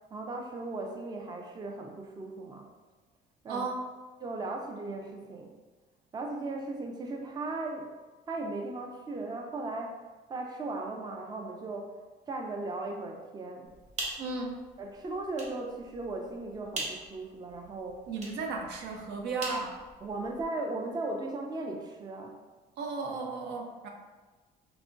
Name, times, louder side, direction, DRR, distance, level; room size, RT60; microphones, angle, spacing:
voice 1, 0.1-2.7 3.4-3.7 4.2-5.5 6.1-7.9 8.3-10.0 10.3-11.9 12.3-13.7 14.8-18.0 20.0-22.3, right 2 dB, 25° right, 2 dB, 0.4 m, -37 dB
voice 2, 3.5-3.9 14.2-14.6 18.1-19.8 22.8-23.9, right 3 dB, 80° right, 2 dB, 0.5 m, -35 dB
sound 1, 13.6-20.5, right 2 dB, 45° right, 0.9 m, -43 dB
3.4 x 2.9 x 2.5 m, 1.3 s
cardioid pair, 110°, 17 cm